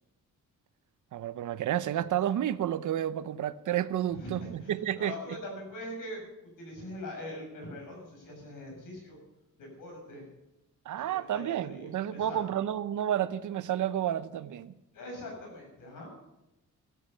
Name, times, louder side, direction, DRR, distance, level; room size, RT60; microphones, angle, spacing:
voice 1, 1.1-5.1 10.9-14.7, right 11 dB, 70° right, 0.8 m, -31 dB
voice 2, 4.1-6.2 6.6-9.2 9.6-10.3 10.9-12.4 14.9-16.3, left 1 dB, 85° left, 7.5 m, -42 dB
16.0 x 13.5 x 5.6 m
wide cardioid pair, 155°, 32 cm